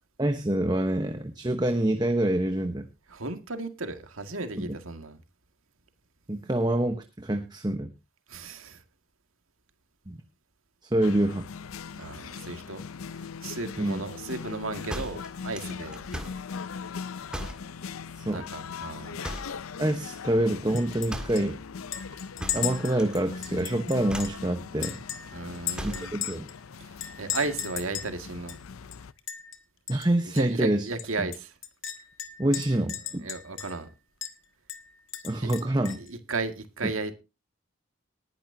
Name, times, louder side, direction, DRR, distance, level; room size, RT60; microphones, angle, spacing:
voice 1, 0.2-2.9 4.6-4.7 6.3-7.9 10.1-10.2 10.8-11.5 13.8-14.0 18.2-18.4 19.8-21.6 22.5-25.0 25.8-26.5 29.9-30.9 31.2-31.3 32.4-33.3 35.2-36.0, right 1 dB, 20° right, 1.0 m, -26 dB
voice 2, 3.1-5.2 8.3-8.8 12.0-12.8 13.1-16.0 18.3-19.2 25.3-26.1 26.8-28.6 30.3-31.5 33.2-33.9 35.4-35.5 36.0-37.1, right 3 dB, 80° right, 2.0 m, -35 dB
sound 1, 11.0-29.1, left 6 dB, 85° left, 0.6 m, -40 dB
sound 2, 14.9-16.5 17.3-17.7 19.2-19.7 21.1-21.5 22.4-23.2 23.4-23.7 24.1-24.4 25.7-26.1, equal, 5° right, 1.8 m, -37 dB
Chink clink, 20.8-21.1 21.4-21.5 21.9-24.4 24.8-26.6 27.0-28.1 28.5-28.6 28.9-29.6 29.9-30.1 30.4-30.5 31.0-33.9 34.2-34.3 34.7-36.1, left 10 dB, 65° left, 1.6 m, -36 dB
19.5 x 10.5 x 2.7 m
head